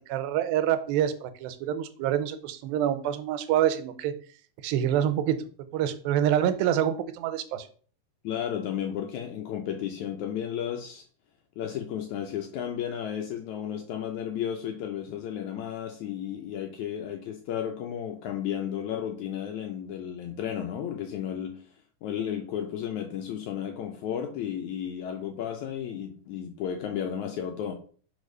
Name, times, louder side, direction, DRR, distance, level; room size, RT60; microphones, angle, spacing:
voice 1, 0.0-4.1 4.6-5.4 5.7-7.7, right 10 dB, 85° right, 2.4 m, -26 dB
voice 2, 8.2-11.0 11.6-21.7 22.0-27.7, left 9 dB, 80° left, 1.7 m, -33 dB
4.9 x 4.3 x 5.3 m
omnidirectional pair, 4.1 m